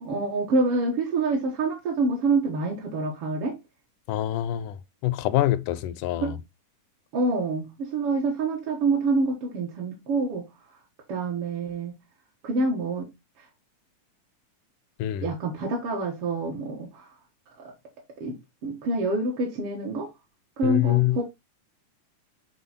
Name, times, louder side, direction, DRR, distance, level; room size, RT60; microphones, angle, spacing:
voice 1, 0.0-3.6 6.2-6.3 7.1-10.5 11.1-12.0 12.4-13.1 15.2-17.1 17.6-17.7 18.2-18.3 18.6-20.1 20.6-21.2, right 3 dB, 55° right, 2.1 m, -26 dB
voice 2, 4.1-4.8 5.0-6.4 15.0-15.3 20.6-21.2, left 14 dB, 85° left, 2.2 m, -25 dB
7.9 x 4.2 x 4.1 m
omnidirectional pair, 3.6 m